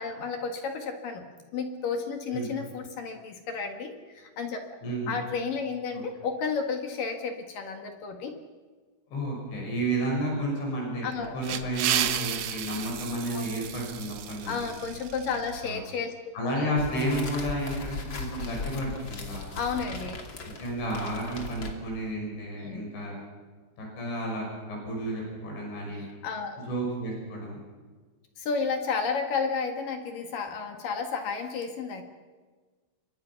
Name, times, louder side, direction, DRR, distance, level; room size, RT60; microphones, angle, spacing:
voice 1, 0.0-4.6 5.1-8.3 11.0-11.4 13.3-13.5 14.4-16.1 16.5-16.7 19.5-20.2 22.6-23.0 25.9-26.6 28.4-32.0, left 5 dB, 55° left, 5 dB, 2.9 m, -32 dB
voice 2, 4.8-5.1 5.9-6.0 9.1-11.1 11.3-14.7 15.6-15.8 16.3-19.5 20.4-23.1 23.8-26.0 26.7-27.6, right 1 dB, 70° left, -1 dB, 8.5 m, -31 dB
sound 1, 11.1-15.6, right 10 dB, 90° right, 1.6 m, -33 dB
sound 2, 16.8-22.1, left 3 dB, 35° left, 2.4 m, -38 dB
28.5 x 24.0 x 5.9 m, 1.4 s
omnidirectional pair, 5.4 m